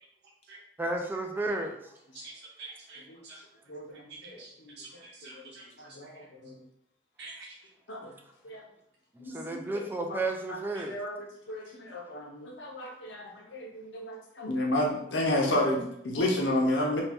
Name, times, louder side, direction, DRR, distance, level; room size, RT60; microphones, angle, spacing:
voice 1, 0.8-1.8 9.2-11.0, right 2 dB, 10° right, 3 dB, 0.3 m, -32 dB
voice 2, 2.6-3.4 4.1-6.3 7.2-7.6 9.7-9.8 10.7-11.0 16.2-16.3, right 3 dB, 65° right, -4 dB, 0.8 m, -47 dB
voice 3, 4.2-4.7 5.2-5.3 5.8-6.5 7.9-8.1 8.4-8.6 9.2-9.6 10.1-10.2 10.5-10.6 10.9-11.1 11.5-17.0, left 1 dB, 75° left, 0 dB, 0.8 m, -31 dB
2.8 x 2.7 x 3.4 m, 0.74 s
head